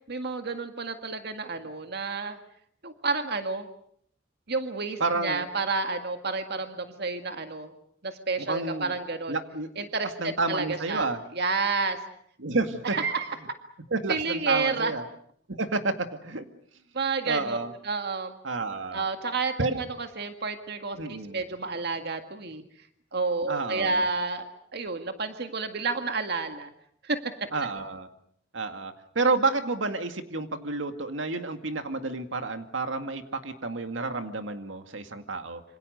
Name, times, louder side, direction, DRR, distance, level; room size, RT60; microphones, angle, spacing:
voice 1, 0.1-2.4 2.8-3.7 4.5-7.7 8.0-9.4 9.8-11.1 11.3-12.0 12.8-13.4 14.1-14.9 16.9-17.6 17.8-18.3 18.9-22.6 23.1-26.7 27.0-27.2, right 4 dB, 60° right, 7 dB, 1.9 m, -30 dB
voice 2, 5.0-5.5 8.5-8.9 9.3-9.9 10.2-11.2 12.4-13.0 13.9-15.0 15.6-16.4 17.2-17.7 18.4-19.0 19.6-19.8 21.0-21.4 23.5-24.0 27.5-28.1 28.5-35.6, right 3 dB, 85° right, 7 dB, 2.1 m, -30 dB
27.0 x 26.0 x 6.7 m, 0.65 s
head